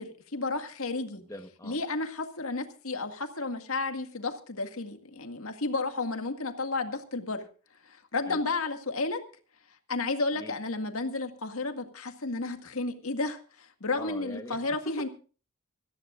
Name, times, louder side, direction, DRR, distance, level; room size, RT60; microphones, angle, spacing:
voice 1, 0.0-1.2 1.6-7.5 7.9-9.2 9.9-15.1, left 3 dB, 85° left, 6 dB, 2.0 m, -32 dB
voice 2, 1.1-1.8 8.3-8.4 10.3-10.6 14.0-14.6 15.0-15.1, left 1 dB, 15° left, 6 dB, 1.1 m, -43 dB
26.0 x 14.5 x 2.5 m, 0.37 s
head